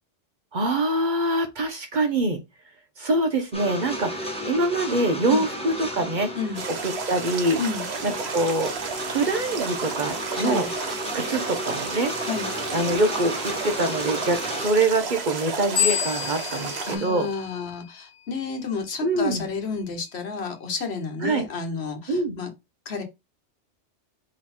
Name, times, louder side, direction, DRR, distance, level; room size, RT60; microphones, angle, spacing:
voice 1, 0.5-2.4 3.0-6.3 6.8-7.6 8.0-8.7 9.1-10.7 11.1-12.1 12.7-17.3 19.0-19.4 21.2-21.4 22.1-22.4, right 2 dB, 45° right, 0.8 m, -24 dB
sound 1, 3.5-14.7, equal, 5° left, 0.9 m, -34 dB
sound 2, 6.5-17.0, right 5 dB, 70° right, 1.2 m, -32 dB
voice 2, 10.3-10.7 12.2-12.5 16.9-22.5 22.8-23.0, left 5 dB, 65° left, 1.3 m, -31 dB
sound 3, 15.8-18.2, left 8 dB, 30° left, 0.8 m, -29 dB
3.9 x 3.1 x 4.2 m
omnidirectional pair, 1.2 m